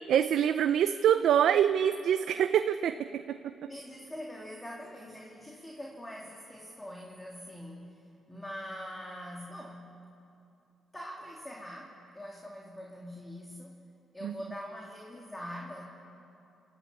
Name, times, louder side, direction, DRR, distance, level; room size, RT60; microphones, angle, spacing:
voice 1, 0.1-3.7 14.2-14.3, right 9 dB, 75° right, 10 dB, 0.6 m, -26 dB
voice 2, 3.6-8.0 8.3-10.0 10.9-13.7 14.1-15.8, equal, 10° left, -2 dB, 2.9 m, -43 dB
28.5 x 14.0 x 8.8 m, 2.6 s
cardioid pair, 90°, 0 cm